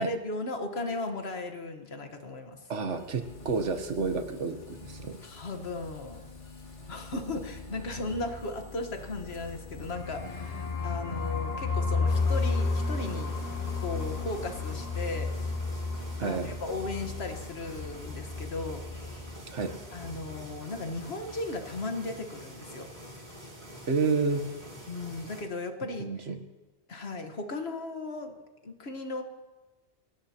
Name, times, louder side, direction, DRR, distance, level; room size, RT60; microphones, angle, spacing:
voice 1, 0.0-2.6 5.2-6.3 6.9-13.3 13.8-15.3 16.2-19.3 19.9-22.9 24.9-26.3 26.9-28.3 28.6-29.2, left 2 dB, 60° left, 5 dB, 1.6 m, -36 dB
voice 2, 2.7-5.2 16.2-16.5 19.5-19.7 23.9-24.4 26.0-26.4, right 4 dB, 85° right, 8 dB, 1.5 m, -30 dB
sound 1, 2.9-20.2, left 2 dB, 80° left, 2.6 m, -48 dB
sound 2, 9.6-19.4 19.6-19.7 20.0-20.5, left 4 dB, 40° left, 0.8 m, -32 dB
sound 3, 12.1-25.4, equal, 40° right, 2.8 m, -46 dB
22.5 x 17.5 x 2.9 m, 1.1 s
omnidirectional pair, 1.2 m